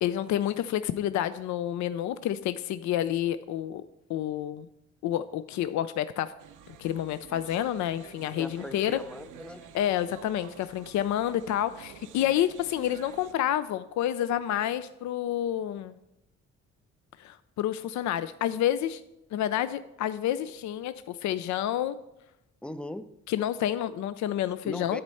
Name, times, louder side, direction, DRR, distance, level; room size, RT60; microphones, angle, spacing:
voice 1, 0.0-3.8 4.1-4.7 5.0-6.3 6.8-9.0 9.7-15.9 17.2-19.0 19.3-22.0 23.3-25.0, left 11 dB, 70° left, 0.5 m, -29 dB
sound 1, 6.4-13.3, right 8 dB, 80° right, 0.7 m, -50 dB
voice 2, 8.4-9.8 22.6-23.2 24.6-25.0, left 1 dB, 5° left, 0.4 m, -39 dB
9.6 x 4.2 x 7.5 m
cardioid pair, 90°, 30 cm